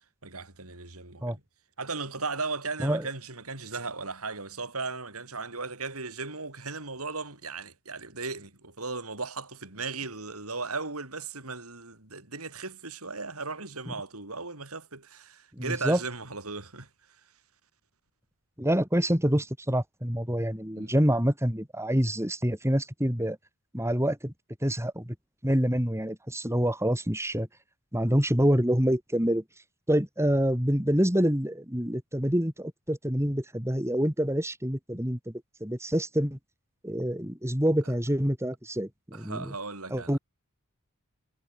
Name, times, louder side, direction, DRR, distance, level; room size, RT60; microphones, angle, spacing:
voice 1, 0.2-1.4 1.8-16.9 20.8-20.9 39.1-40.2, right 4 dB, 90° right, 6.9 m, -36 dB
voice 2, 15.5-16.0 18.6-23.4 23.7-24.3 24.6-25.1 25.4-27.5 27.9-29.4 29.9-36.4 36.8-39.5 39.9-40.2, equal, 10° right, 4.9 m, -26 dB
head